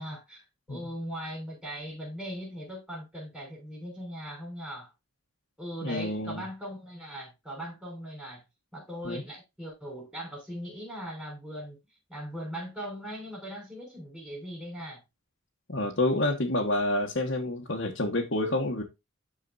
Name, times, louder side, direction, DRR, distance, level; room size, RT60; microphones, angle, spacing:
voice 1, 0.0-4.9 5.6-8.4 8.7-11.8 12.1-15.0, equal, 5° right, 5.5 m, -39 dB
voice 2, 5.8-6.4 9.0-9.2 15.7-18.8, left 1 dB, 55° left, 1.5 m, -28 dB
13.0 x 4.8 x 2.7 m
head